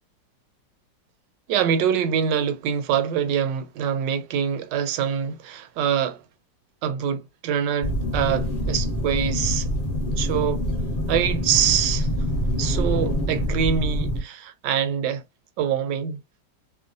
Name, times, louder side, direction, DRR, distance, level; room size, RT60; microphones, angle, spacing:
voice 1, 1.5-6.2 6.8-9.7 10.2-10.6 11.1-12.1 12.6-15.2 15.6-16.2, right 8 dB, 75° right, 1.2 m, -24 dB
sound 1, 7.8-14.2, equal, 30° left, 0.8 m, -25 dB
3.0 x 2.2 x 2.5 m
omnidirectional pair, 2.0 m